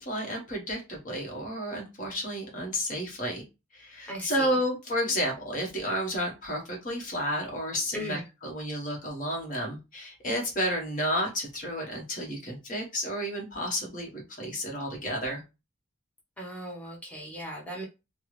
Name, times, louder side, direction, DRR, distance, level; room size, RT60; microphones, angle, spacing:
voice 1, 0.0-3.4 3.7-15.4, equal, 40° left, 0 dB, 1.1 m, -31 dB
voice 2, 4.1-4.5 7.9-8.2 16.4-17.8, equal, 5° left, -2 dB, 0.9 m, -37 dB
3.3 x 2.0 x 3.1 m, 0.27 s
head